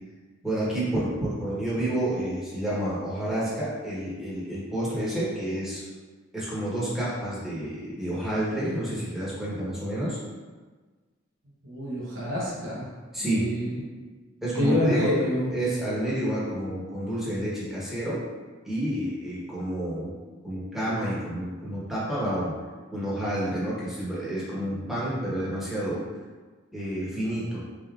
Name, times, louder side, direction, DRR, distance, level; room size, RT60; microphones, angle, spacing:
voice 1, 0.4-5.8 6.3-10.2 13.1-13.4 14.4-15.1 15.5-18.2 18.6-20.1 20.4-22.5 22.9-26.0 26.7-27.6, right 1 dB, ahead, -9 dB, 1.0 m, -29 dB
voice 2, 11.6-12.9 13.2-13.8 14.5-15.5, left 1 dB, 75° right, -7 dB, 1.0 m, -26 dB
3.8 x 3.6 x 2.4 m, 1.4 s
head